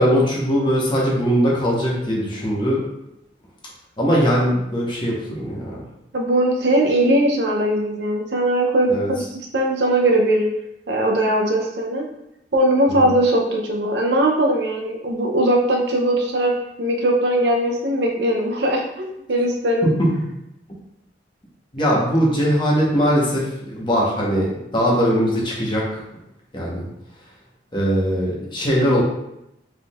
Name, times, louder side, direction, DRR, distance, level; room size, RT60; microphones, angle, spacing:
voice 1, 0.0-2.8 4.0-5.8 8.9-9.1 21.7-25.8 26.5-26.9 27.7-29.0, equal, 25° left, -4 dB, 1.1 m, -20 dB
voice 2, 6.1-9.3 9.5-10.5 10.9-12.0 12.5-16.5 16.8-19.9, right 1 dB, 70° right, 1 dB, 0.7 m, -20 dB
4.8 x 3.7 x 2.4 m, 0.85 s
head